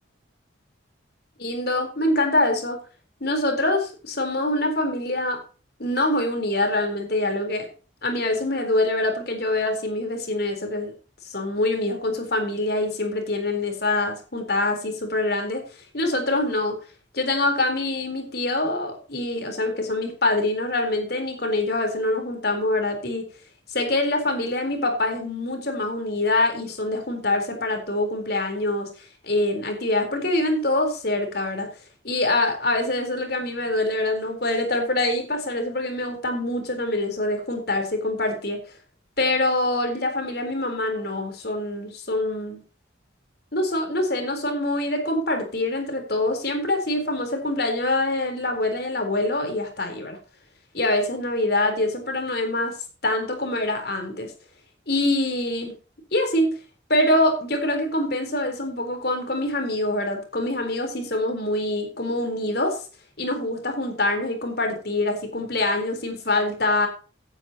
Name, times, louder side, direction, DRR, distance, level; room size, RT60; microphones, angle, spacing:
voice 1, 1.4-2.8 3.2-5.4 5.8-7.7 8.0-10.9 11.2-15.6 15.9-16.8 17.1-23.3 23.7-28.9 29.2-31.7 32.0-38.6 39.2-42.6 43.5-50.2 50.7-52.8 53.0-54.3 54.9-55.7 56.1-56.5 56.9-62.8 63.2-66.9, left 2 dB, 55° left, 5 dB, 3.9 m, -25 dB
16.0 x 9.8 x 2.9 m, 0.36 s
head